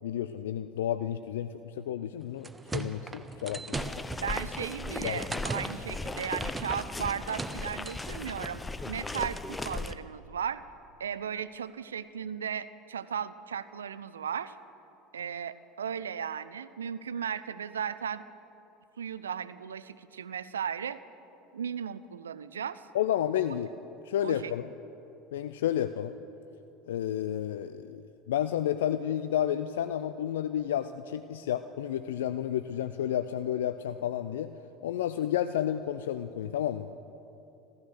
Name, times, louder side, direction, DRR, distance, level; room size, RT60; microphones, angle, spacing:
voice 1, 0.0-3.8 5.0-5.3 22.9-23.7 24.0-24.7 25.3-26.1 26.9-34.5 34.8-36.9, left 10 dB, 70° left, 11 dB, 0.4 m, -31 dB
sound 1, 2.2-8.6, right 3 dB, 15° right, 0.8 m, -40 dB
sound 2, 3.7-9.9, left 2 dB, 15° left, 0.6 m, -37 dB
voice 2, 4.2-10.6 11.0-14.5 15.1-18.2 19.0-21.0 21.5-22.9 24.2-24.5, right 8 dB, 80° right, 15 dB, 0.4 m, -36 dB
14.5 x 13.5 x 6.5 m, 2.9 s
figure-of-eight pair, 70°, 0 cm